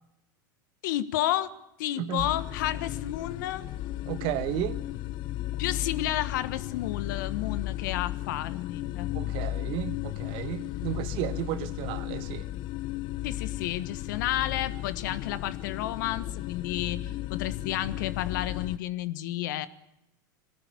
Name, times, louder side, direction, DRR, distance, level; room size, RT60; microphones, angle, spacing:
voice 1, 0.8-1.5 1.8-3.7 5.6-9.1 13.2-19.7, left 13 dB, 70° left, 14 dB, 1.4 m, -31 dB
voice 2, 2.0-2.3 4.1-4.8 9.1-12.5, right 12 dB, 55° right, 12 dB, 1.5 m, -33 dB
sound 1, 2.2-18.8, left 15 dB, 45° left, 0.8 m, -35 dB
21.5 x 18.0 x 8.4 m, 0.87 s
hypercardioid pair, 105°, 11 cm